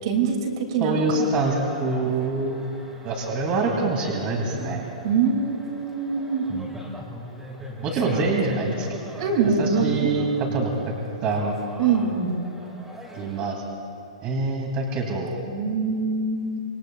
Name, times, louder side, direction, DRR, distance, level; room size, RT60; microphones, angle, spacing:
voice 1, 0.0-1.3 5.0-6.5 8.0-8.1 9.2-10.1 11.8-12.3 15.5-16.6, right 5 dB, 50° right, 3 dB, 2.4 m, -24 dB
voice 2, 0.8-2.6 3.0-4.8 6.5-6.7 7.8-10.7 11.2-11.5 13.2-13.6 14.2-15.4, right 3 dB, 25° right, 0 dB, 2.4 m, -25 dB
sound 1, 1.1-13.5, equal, 5° right, 2.0 m, -39 dB
26.0 x 22.5 x 2.3 m, 2.6 s
hypercardioid pair, 160°, 4 cm